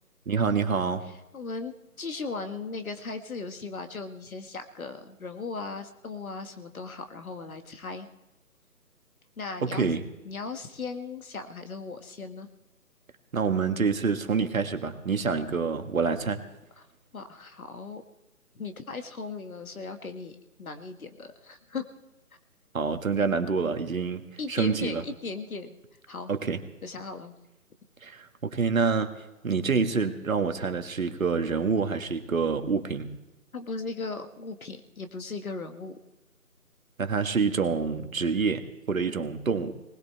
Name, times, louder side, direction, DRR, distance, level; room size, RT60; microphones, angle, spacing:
voice 1, 0.3-1.0 9.6-10.0 13.3-16.4 22.7-24.2 24.5-25.0 26.3-26.6 28.0-29.1 29.4-33.1 37.0-39.7, right 5 dB, 60° right, 8 dB, 1.6 m, -27 dB
voice 2, 1.1-1.7 2.0-8.1 9.4-10.0 10.2-12.5 16.8-16.9 17.1-18.0 18.6-21.9 24.4-25.7 26.1-26.3 26.8-27.3 33.5-36.0, left 4 dB, 65° left, 7 dB, 1.9 m, -37 dB
20.5 x 20.0 x 3.4 m, 0.99 s
figure-of-eight pair, 155°, 45 cm